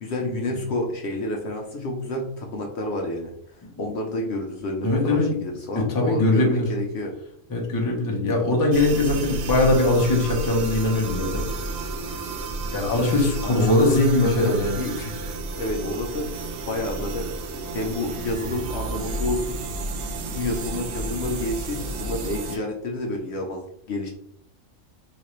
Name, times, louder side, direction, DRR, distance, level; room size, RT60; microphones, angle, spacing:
voice 1, 0.0-7.1 13.4-14.9 15.6-17.3 17.7-19.6 20.3-23.6 23.9-24.1, left 2 dB, 65° left, 1 dB, 0.7 m, -29 dB
voice 2, 4.8-5.3 5.8-6.7 7.5-11.4 12.7-15.1, left 2 dB, 25° left, 0 dB, 0.4 m, -21 dB
sound 1, 8.7-22.6, right 2 dB, 75° right, 1.0 m, -31 dB
3.8 x 2.5 x 3.0 m, 0.73 s
omnidirectional pair, 1.5 m